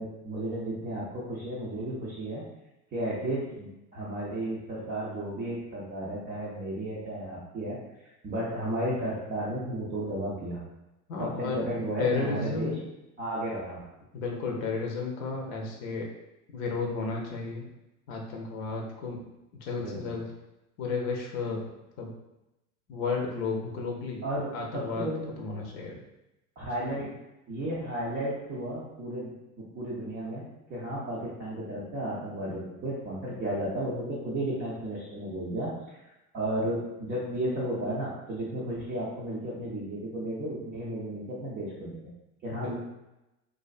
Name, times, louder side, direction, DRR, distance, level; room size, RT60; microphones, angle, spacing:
voice 1, 0.0-2.4 2.9-10.6 11.2-12.8 13.2-13.8 19.8-20.2 24.2-25.6 26.6-27.1 27.5-30.4 30.7-36.0 36.3-42.1 42.4-42.7, right 1 dB, 20° right, -7 dB, 0.4 m, -33 dB
voice 2, 11.1-11.6 12.0-12.8 14.1-16.1 16.5-17.7 18.1-19.2 19.6-20.3 20.8-21.6 22.0-22.1 22.9-24.2 24.5-25.1 25.4-26.0 42.5-42.7, left 4 dB, 60° left, 0 dB, 0.6 m, -32 dB
2.4 x 2.2 x 2.4 m, 0.94 s
hypercardioid pair, 90°, 46 cm